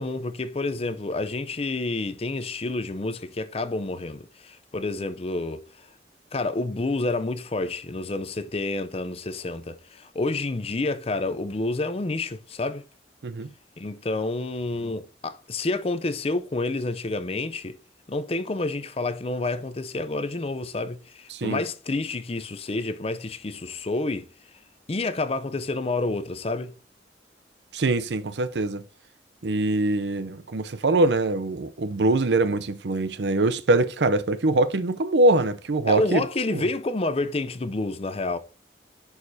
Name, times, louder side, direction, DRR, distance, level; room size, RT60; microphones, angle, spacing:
voice 1, 0.0-5.9 6.3-12.9 13.8-17.8 18.1-24.3 24.9-26.7 35.8-38.4, left 2 dB, 35° left, 0.5 m, -29 dB
voice 2, 27.7-28.8 29.4-36.2 36.5-36.7, right 2 dB, 70° right, 0.6 m, -23 dB
10.5 x 4.9 x 2.7 m
head